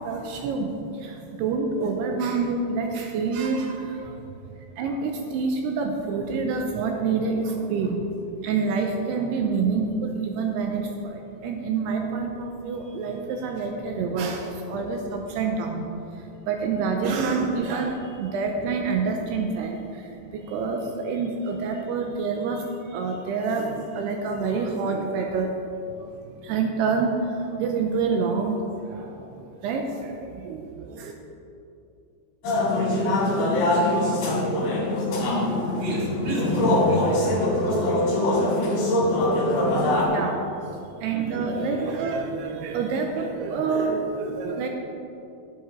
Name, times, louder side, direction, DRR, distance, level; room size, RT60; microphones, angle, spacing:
voice 1, 0.0-4.2 4.8-8.1 8.4-15.9 16.1-31.1 40.1-40.7 41.0-44.7, right 4 dB, 80° right, 3 dB, 2.5 m, -27 dB
voice 2, 4.0-4.4 16.1-16.5 20.2-20.3 35.2-40.1 40.7-41.0 41.5-41.7 44.4-44.5, equal, 65° right, -5 dB, 1.2 m, -35 dB
sound 1, 32.4-40.0, left 1 dB, 65° left, 4.3 m, -23 dB
10.5 x 9.6 x 4.5 m, 2.7 s
omnidirectional pair, 5.2 m